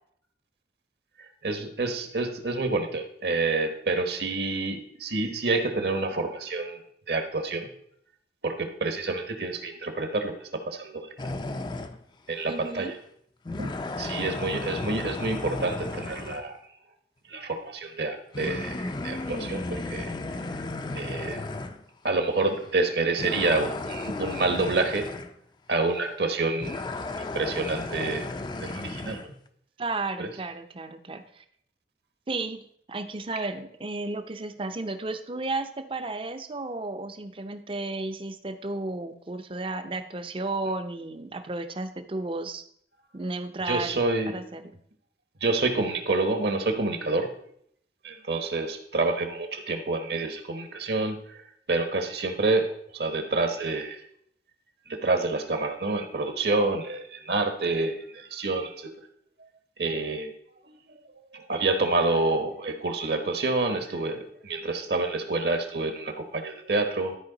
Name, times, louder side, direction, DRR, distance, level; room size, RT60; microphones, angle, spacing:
voice 1, 1.4-6.8 7.1-7.7 8.4-11.1 12.3-13.0 13.6-13.7 14.0-16.6 17.3-20.1 20.9-21.4 22.0-25.1 25.7-26.8 27.3-28.3 28.6-29.3 30.2-30.3 43.7-44.4 45.4-47.3 48.0-51.4 51.7-54.0 54.9-58.9 59.8-60.3 60.7-61.0 61.3-67.2, right 3 dB, 60° right, 7 dB, 1.1 m, -28 dB
sound 1, 11.2-12.0 12.7-12.8 13.5-16.4 18.3-21.8 22.5-22.7 23.2-25.3 26.6-29.3, left 2 dB, 25° left, 0.4 m, -34 dB
voice 2, 12.5-13.0 29.8-31.4 32.3-42.6 43.1-44.0 44.3-44.7, right 2 dB, 30° right, 10 dB, 0.5 m, -33 dB
12.5 x 4.6 x 3.9 m, 0.68 s
head